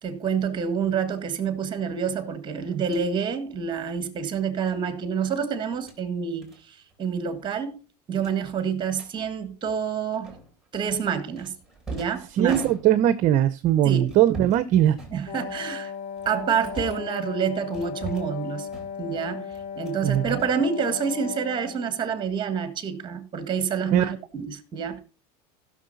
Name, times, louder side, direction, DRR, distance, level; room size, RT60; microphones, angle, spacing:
voice 1, 0.0-7.8 8.1-10.3 10.7-11.5 11.9-12.6 13.8-14.1 15.1-15.9 16.2-18.7 19.0-19.4 19.8-25.0, right 6 dB, 25° right, 1.5 m, -28 dB
sound 1, 2.8-3.1 4.6-4.8 5.6-6.0 6.4-6.6 6.9-7.1 7.4-7.5 8.2-9.1 10.2-10.7 11.4-13.2 14.0-14.7 14.9-15.7 16.2-17.1 17.7-18.4 18.7-19.2 19.5-20.0 20.3-21.2, right 3 dB, ahead, 3.6 m, -41 dB
voice 2, 12.3-15.0 20.0-20.4 23.9-24.1, right 12 dB, 40° right, 0.7 m, -20 dB
Wind instrument woodwind instrument, 15.3-22.0, left 7 dB, 30° left, 0.7 m, -36 dB
15.0 x 6.4 x 4.0 m
supercardioid pair, 145°, 20 cm